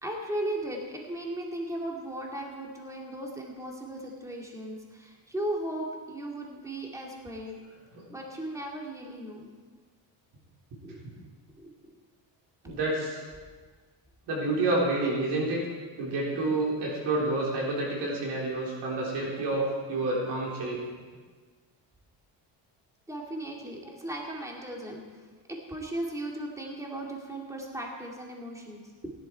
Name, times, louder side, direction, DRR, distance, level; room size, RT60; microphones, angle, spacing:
voice 1, 0.0-7.6 8.1-9.6 10.8-11.0 11.6-11.7 23.1-29.1, right 1 dB, 5° right, -1 dB, 2.4 m, -37 dB
voice 2, 12.6-13.2 14.3-15.7 16.0-20.8, right 2 dB, 70° right, -3 dB, 4.0 m, -29 dB
16.5 x 11.5 x 4.6 m, 1.5 s
cardioid pair, 120°, 41 cm